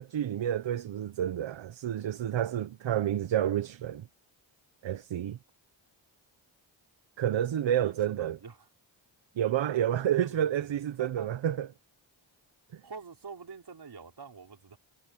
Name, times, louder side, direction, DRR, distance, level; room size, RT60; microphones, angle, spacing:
voice 1, 0.0-4.1 4.8-5.4 7.2-8.4 9.4-11.7 12.7-12.8, right 10 dB, 75° right, 0.8 m, -29 dB
voice 2, 7.8-8.7 10.0-11.3 12.8-14.8, right 5 dB, 55° right, 5.7 m, -47 dB
wide cardioid pair, 100°, 47 cm